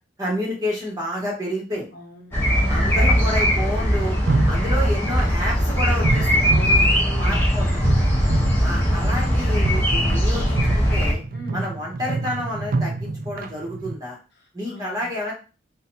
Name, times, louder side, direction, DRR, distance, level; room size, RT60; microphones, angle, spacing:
voice 1, 0.2-1.8 2.7-4.2 4.5-6.5 7.2-7.8 8.6-11.2 11.5-14.2 14.5-15.3, left 1 dB, 20° right, -4 dB, 1.2 m, -29 dB
voice 2, 1.9-2.4 2.8-2.9 6.4-7.5 11.3-11.7 14.4-15.1, equal, 55° left, 0 dB, 0.9 m, -37 dB
sound 1, 2.3-11.1, equal, 10° left, 0.8 m, -20 dB
sound 2, 3.4-3.5 4.3-5.3 6.0-14.0, right 3 dB, 45° right, 0.3 m, -28 dB
4.9 x 2.2 x 2.8 m, 0.33 s
head